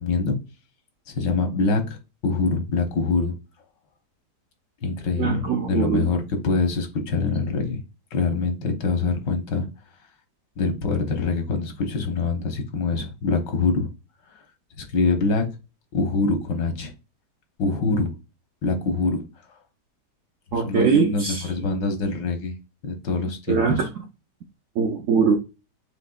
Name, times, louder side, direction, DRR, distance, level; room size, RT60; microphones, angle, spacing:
voice 1, 0.0-0.4 1.1-3.3 4.8-7.8 8.1-9.7 10.6-13.9 14.8-15.5 15.9-16.9 17.6-18.1 18.6-19.2 20.5-22.5 22.8-23.9, left 4 dB, 85° left, 1.7 m, -24 dB
voice 2, 5.2-6.1 20.5-21.4 23.5-23.9 24.8-25.4, right 5 dB, 70° right, 0.7 m, -21 dB
6.9 x 2.8 x 2.3 m
omnidirectional pair, 1.8 m